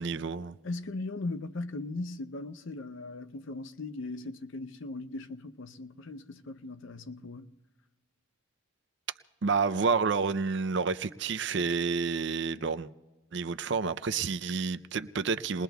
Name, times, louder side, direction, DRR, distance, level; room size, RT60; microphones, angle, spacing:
voice 1, 0.0-0.6 9.4-12.9 13.3-15.6, right 5 dB, 60° right, 0.5 m, -29 dB
voice 2, 0.6-7.5, left 2 dB, 70° left, 0.6 m, -38 dB
29.5 x 21.0 x 2.3 m
head